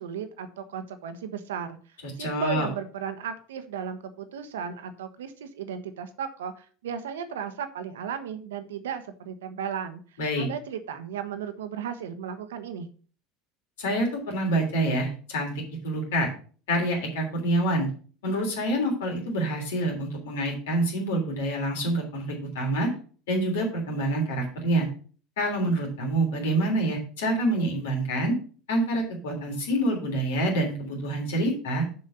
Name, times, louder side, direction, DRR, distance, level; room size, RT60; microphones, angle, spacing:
voice 1, 0.0-1.8 2.2-10.0 10.4-12.9, right 7 dB, 75° right, 9 dB, 1.1 m, -35 dB
voice 2, 2.0-2.7 10.2-10.5 13.8-16.3 16.7-17.9 18.2-22.9 23.3-24.9 25.4-28.3 28.7-31.8, right 1 dB, 70° left, 2 dB, 3.1 m, -27 dB
6.9 x 5.4 x 6.5 m, 0.41 s
figure-of-eight pair, 75°, 0 cm